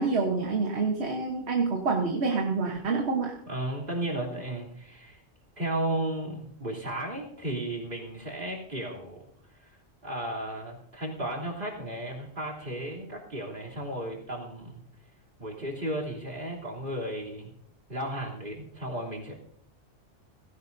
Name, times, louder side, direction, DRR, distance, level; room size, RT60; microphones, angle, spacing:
voice 1, 0.0-3.4, right 4 dB, 60° right, 2 dB, 1.5 m, -27 dB
voice 2, 3.5-5.2 5.6-9.2 9.6-9.8 10.0-14.8 15.4-17.5 17.9-19.3, right 1 dB, 45° right, 0 dB, 3.5 m, -34 dB
17.5 x 16.5 x 2.7 m, 0.68 s
omnidirectional pair, 1.2 m